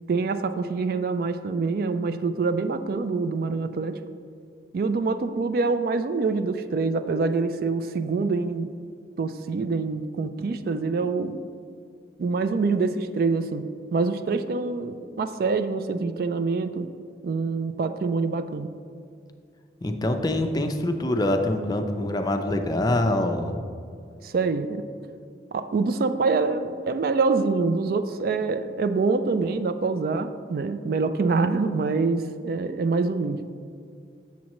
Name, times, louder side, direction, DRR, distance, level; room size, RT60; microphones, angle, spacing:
voice 1, 0.1-4.0 4.7-8.7 9.2-11.4 12.2-13.6 13.9-16.9 17.2-18.7 24.2-24.8 25.5-33.4, right 4 dB, 55° right, 10 dB, 0.3 m, -25 dB
voice 2, 19.8-23.5, left 1 dB, 20° left, 5 dB, 0.4 m, -25 dB
7.4 x 7.1 x 3.0 m, 2.3 s
head